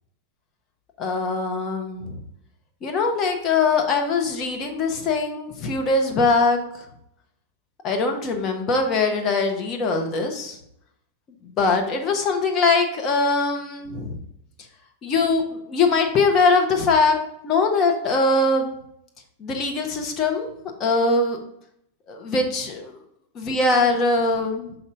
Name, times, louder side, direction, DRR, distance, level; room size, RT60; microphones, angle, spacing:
voice 1, 1.0-2.2 2.8-6.6 7.8-10.6 11.4-14.2 15.0-17.2 17.4-18.7 19.4-20.5 20.8-21.4 22.1-22.9 23.4-24.7, left 3 dB, 30° left, 3 dB, 1.2 m, -22 dB
5.9 x 5.4 x 3.9 m, 0.76 s
figure-of-eight pair, 90°, 0 cm